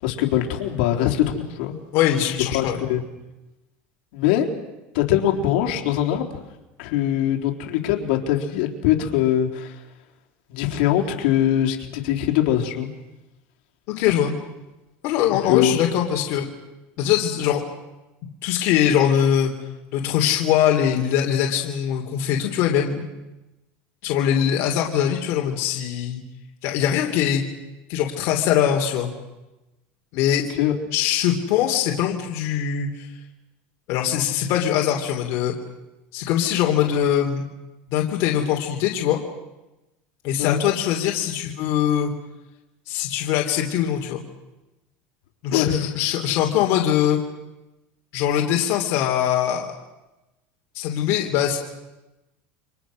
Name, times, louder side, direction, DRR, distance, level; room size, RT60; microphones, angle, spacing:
voice 1, 0.0-1.8 2.5-3.0 4.1-4.5 4.9-6.3 6.8-9.8 10.5-12.9 15.3-15.9 30.5-30.7 40.4-40.6 45.5-45.7, left 11 dB, 70° left, 2 dB, 3.8 m, -22 dB
voice 2, 1.9-2.8 13.9-14.3 15.0-16.5 17.0-17.6 18.4-19.5 19.9-23.1 24.0-26.2 26.6-27.4 27.9-29.1 30.1-30.5 30.9-33.1 33.9-35.5 36.1-37.4 37.9-39.2 40.2-42.1 42.9-44.2 45.4-47.2 48.1-49.7 50.7-51.6, left 10 dB, 55° left, 1 dB, 3.0 m, -22 dB
29.0 x 25.5 x 6.3 m, 1.0 s
cardioid pair, 165°, 6 cm